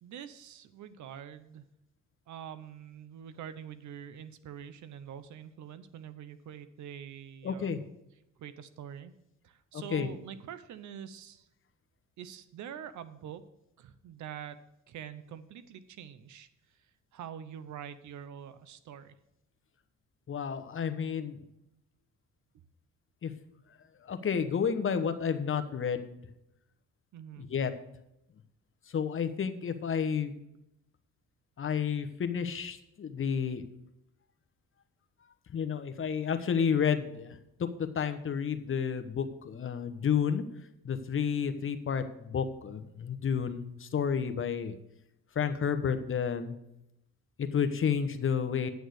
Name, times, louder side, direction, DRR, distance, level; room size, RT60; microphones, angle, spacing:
voice 1, 0.0-1.6 2.3-7.9 8.4-9.1 9.4-11.4 12.2-13.4 13.8-14.6 14.9-16.5 17.1-19.1 27.1-27.5, right 9 dB, 75° right, 13 dB, 0.8 m, -45 dB
voice 2, 7.4-7.8 9.7-10.1 20.3-21.4 23.2-23.3 24.0-26.3 27.4-27.7 28.9-30.3 31.6-33.7 35.5-40.4 40.8-44.8 45.3-46.5 47.4-48.7, left 7 dB, 45° left, 9 dB, 1.0 m, -31 dB
9.5 x 6.3 x 6.4 m, 0.83 s
cardioid pair, 90°, 30 cm